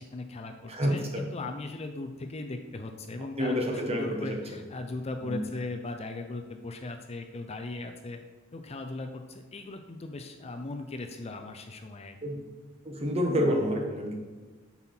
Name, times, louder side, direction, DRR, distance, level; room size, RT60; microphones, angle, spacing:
voice 1, 0.0-8.2 8.5-12.2, left 2 dB, 30° left, 5 dB, 0.5 m, -38 dB
voice 2, 0.7-1.2 3.4-4.4 5.2-5.4 12.2-12.4 12.8-14.1, equal, 30° right, 2 dB, 1.2 m, -28 dB
8.2 x 5.6 x 4.4 m, 1.3 s
head